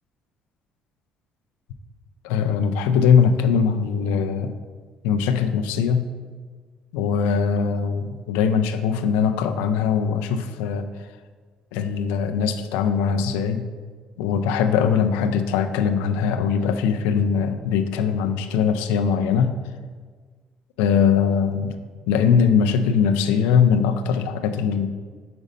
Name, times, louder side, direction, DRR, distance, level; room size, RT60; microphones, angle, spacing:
voice 1, 2.2-4.5 5.0-6.1 6.9-10.8 11.7-13.7 14.2-19.6 20.8-21.8 22.1-24.9, left 7 dB, 90° left, 8 dB, 0.4 m, -21 dB
5.2 x 4.0 x 5.2 m, 1.6 s
supercardioid pair, 70°, 3 cm